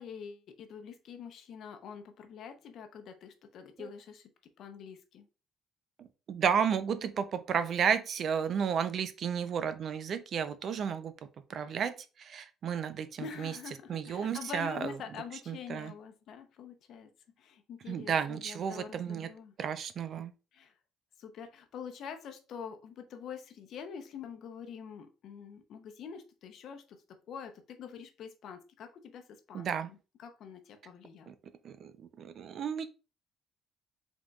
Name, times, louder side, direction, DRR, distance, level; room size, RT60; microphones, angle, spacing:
voice 1, 0.0-4.3 4.6-5.3 13.2-17.1 17.4-19.6 20.5-20.7 21.2-31.3, left 7 dB, 55° left, 7 dB, 0.7 m, -46 dB
voice 2, 6.0-11.1 11.5-11.9 12.2-13.5 13.9-14.9 15.5-15.9 17.9-19.3 19.6-20.3 29.5-29.9 31.3-31.4 31.6-32.9, right 7 dB, 45° right, 11 dB, 0.4 m, -32 dB
4.9 x 3.7 x 2.3 m, 0.32 s
cardioid pair, 140°, 0 cm